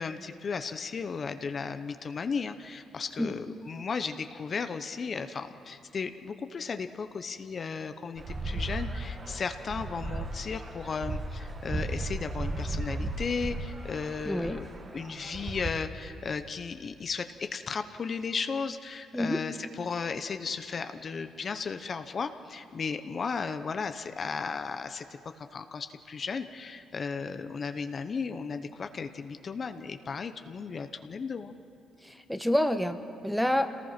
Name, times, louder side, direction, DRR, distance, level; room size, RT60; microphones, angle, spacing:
voice 1, 0.0-14.7 14.9-31.5, left 5 dB, 45° left, 9 dB, 0.8 m, -35 dB
sound 1, 8.2-15.7, right 2 dB, 35° right, 1.7 m, -36 dB
voice 2, 14.2-14.6 19.1-19.4 32.0-33.7, left 1 dB, ahead, 7 dB, 1.1 m, -28 dB
27.0 x 18.5 x 5.9 m, 2.7 s
cardioid pair, 90°, 0 cm